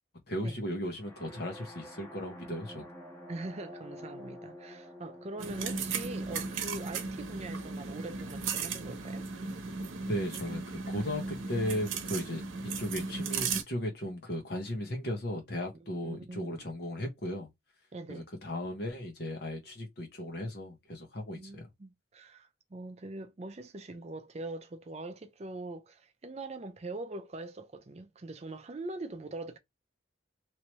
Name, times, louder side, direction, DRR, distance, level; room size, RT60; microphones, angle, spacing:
voice 1, 0.3-2.9 10.1-12.4 12.8-17.5 18.1-21.7, left 1 dB, 50° left, 1.1 m, -36 dB
sound 1, 1.0-8.8, equal, 10° left, 1.2 m, -50 dB
voice 2, 3.3-9.3 15.8-16.7 17.9-18.3 21.3-29.6, right 2 dB, 30° right, 0.5 m, -43 dB
sound 2, 5.4-13.6, right 4 dB, 80° right, 0.8 m, -36 dB
3.1 x 2.9 x 3.0 m
head